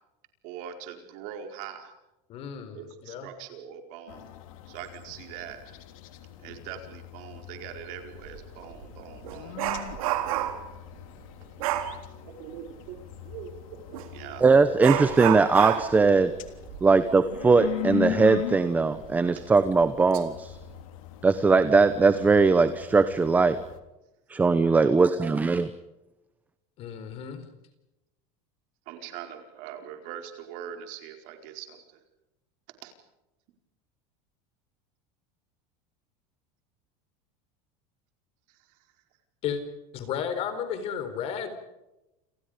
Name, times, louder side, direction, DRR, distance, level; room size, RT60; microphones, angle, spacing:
voice 1, 0.4-1.9 2.7-4.3 4.7-5.6 6.4-10.3 12.4-12.9 13.2-13.5 14.1-14.4 19.4-19.5 24.8-25.4 28.9-32.0 32.8-32.9 38.5-38.8, right 9 dB, 50° right, 5 dB, 4.7 m, -42 dB
voice 2, 2.3-3.3 26.8-27.4 39.4-39.6 39.9-41.5, left 8 dB, 35° left, 10 dB, 4.3 m, -33 dB
sound 1, 4.1-23.8, left 14 dB, 75° left, 3.3 m, -40 dB
Dog, 8.2-8.4 8.8-10.7 11.6-12.0 13.9-14.1 14.8-18.1 18.4-18.5 19.0-19.1 19.8-20.2 20.6-20.8, right 12 dB, 90° right, 4.1 m, -30 dB
voice 3, 14.4-16.3 16.8-20.6 21.2-23.6 24.3-25.7, right 4 dB, 10° right, 11 dB, 0.9 m, -20 dB
29.5 x 27.5 x 5.2 m, 0.95 s
cardioid pair, 180°, 18 cm